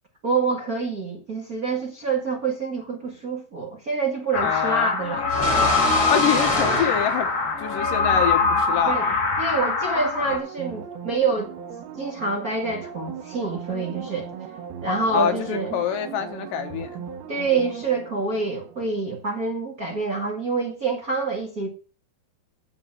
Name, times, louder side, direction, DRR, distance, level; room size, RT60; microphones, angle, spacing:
voice 1, 0.2-5.3 8.8-9.1 9.4-11.5 12.0-14.3 14.8-15.7 17.3-21.7, right 3 dB, 35° right, 1.7 m, -26 dB
sound 1, 4.3-10.4, left 4 dB, 45° left, 2.9 m, -23 dB
voice 2, 4.4-4.9 6.1-7.3 7.6-9.1 15.1-17.0, left 9 dB, 70° left, 2.6 m, -26 dB
sound 2, 5.3-8.1, equal, 15° left, 6.4 m, -28 dB
sound 3, 10.0-19.3 19.7-19.8, right 8 dB, 85° right, 3.3 m, -39 dB
8.7 x 8.1 x 7.8 m
omnidirectional pair, 4.3 m